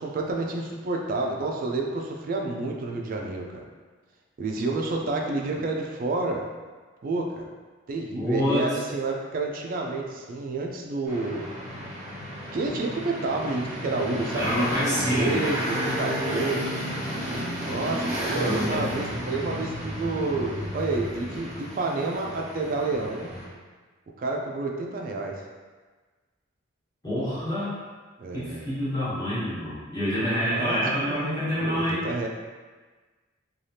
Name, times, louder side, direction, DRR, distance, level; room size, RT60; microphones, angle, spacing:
voice 1, 0.0-3.7 4.4-6.4 7.0-7.5 7.9-11.4 12.5-16.7 17.6-23.3 24.2-25.4 28.2-28.8 30.5-32.3, right 3 dB, 45° right, 1 dB, 0.3 m, -29 dB
voice 2, 8.1-8.7 14.3-15.5 18.4-18.8 27.0-27.8 28.3-32.0, equal, 20° left, -12 dB, 1.2 m, -27 dB
sound 1, 11.0-23.5, equal, 10° right, 1.3 m, -32 dB
3.2 x 2.3 x 2.7 m, 1.4 s
head